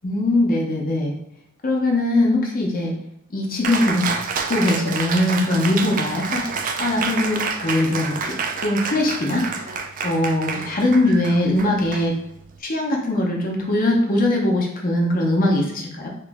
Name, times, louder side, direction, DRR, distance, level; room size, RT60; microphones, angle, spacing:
voice 1, 0.0-1.1 1.6-2.9 3.3-6.4 6.8-8.3 8.6-9.5 10.0-12.1 12.6-16.1, left 1 dB, 45° left, 0 dB, 0.7 m, -21 dB
Cheering, 3.6-12.6, right 5 dB, 40° right, 0.3 m, -28 dB
3.0 x 3.0 x 3.5 m, 0.81 s
head